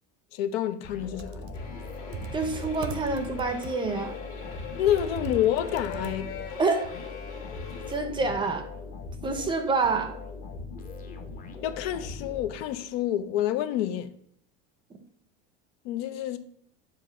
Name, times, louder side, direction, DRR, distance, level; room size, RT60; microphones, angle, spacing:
voice 1, 0.3-1.5 4.8-6.3 11.6-14.1 15.8-16.4, left 11 dB, 80° left, 0.7 m, -28 dB
sound 1, 0.8-13.0, left 4 dB, 30° left, 0.8 m, -41 dB
Computer keyboard, 1.0-6.6, right 8 dB, 60° right, 0.6 m, -40 dB
sound 2, 1.5-7.9, left 5 dB, 50° left, 2.0 m, -42 dB
voice 2, 2.3-4.2 6.6-7.0 7.9-8.7 9.2-10.2, right 3 dB, 15° right, 0.5 m, -27 dB
7.3 x 2.6 x 5.4 m
cardioid pair, 150°, 30 cm